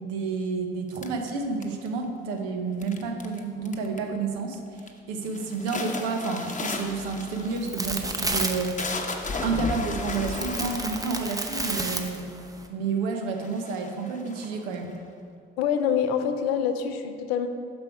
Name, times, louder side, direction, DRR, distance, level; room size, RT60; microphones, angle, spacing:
voice 1, 0.0-4.6 5.1-8.9 9.4-12.3 12.7-14.9, right 4 dB, 75° right, 4 dB, 0.8 m, -30 dB
sound 1, 1.0-2.1 2.8-3.4 3.7-4.2 4.5-4.9 5.3-12.3 13.0-13.1 13.4-15.0, left 3 dB, 25° left, 0.9 m, -35 dB
sound 2, 6.8-12.7, right 2 dB, 10° right, 0.7 m, -33 dB
voice 2, 15.6-17.5, left 8 dB, 80° left, 8 dB, 0.5 m, -25 dB
6.2 x 5.2 x 4.6 m, 2.3 s
hypercardioid pair, 50°, 30 cm